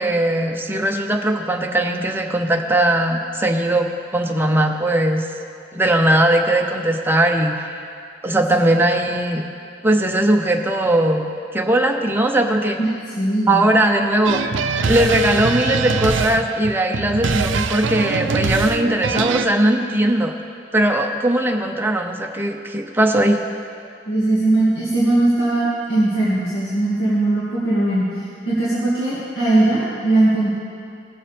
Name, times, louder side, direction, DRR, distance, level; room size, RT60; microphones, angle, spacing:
voice 1, 0.0-5.3 5.7-7.8 8.2-9.4 9.8-11.3 11.5-12.8 13.5-14.4 14.9-20.3 20.7-23.4, right 1 dB, 10° right, 2 dB, 0.6 m, -19 dB
voice 2, 13.2-13.6 24.1-30.5, right 2 dB, 80° left, -10 dB, 2.1 m, -19 dB
sound 1, 14.3-19.5, right 4 dB, 90° right, 0.5 m, -22 dB
18.0 x 7.2 x 3.4 m, 2.4 s
head